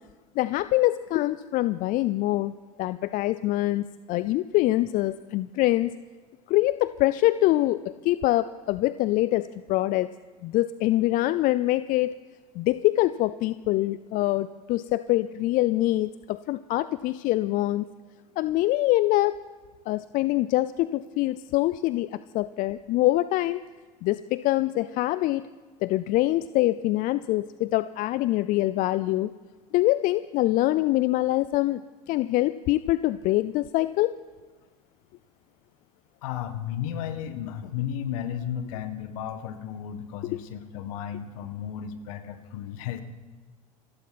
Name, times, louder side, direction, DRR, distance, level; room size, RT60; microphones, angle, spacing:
voice 1, 0.4-2.5 2.8-5.9 6.5-10.1 10.4-12.2 12.5-17.9 18.4-19.4 19.9-23.6 24.0-25.5 25.8-29.3 29.7-31.8 32.1-34.2 40.3-40.4, left 16 dB, 45° left, 15 dB, 0.5 m, -24 dB
voice 2, 36.2-43.0, left 9 dB, 70° left, 10 dB, 1.7 m, -34 dB
27.5 x 12.0 x 4.3 m, 1.3 s
hypercardioid pair, 85°, 19 cm